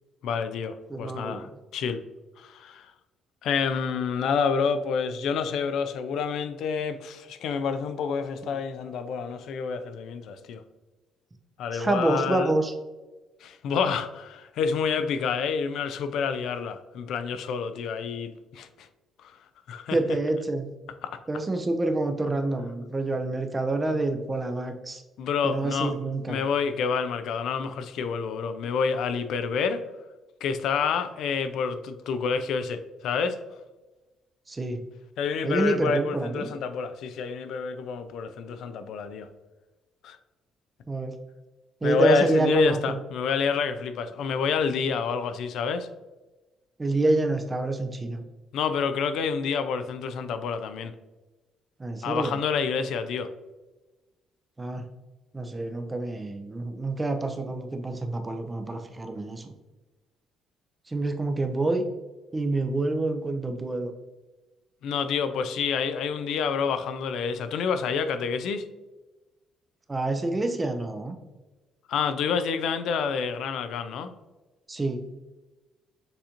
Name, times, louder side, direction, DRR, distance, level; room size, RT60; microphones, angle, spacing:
voice 1, 0.2-1.5 1.7-2.0 2.4-2.9 3.4-10.6 11.6-12.5 13.4-18.7 19.2-19.3 19.7-20.0 21.0-21.2 25.2-25.9 26.3-29.8 30.4-33.4 35.2-39.3 40.0-40.2 41.8-45.9 48.5-50.9 52.0-53.3 64.8-68.6 71.9-74.1, left 6 dB, 65° left, 10 dB, 0.3 m, -28 dB
voice 2, 0.9-1.6 8.4-8.6 11.7-12.7 19.9-20.7 21.3-25.0 25.4-26.4 34.5-34.8 35.4-36.5 40.9-41.1 41.8-43.0 46.8-48.2 51.8-52.4 54.6-54.8 55.3-59.5 60.9-61.8 62.3-63.9 69.9-71.2 74.7-75.0, right 2 dB, 15° right, 6 dB, 0.4 m, -27 dB
6.7 x 2.5 x 2.8 m, 1.1 s
cardioid pair, 155°, 0 cm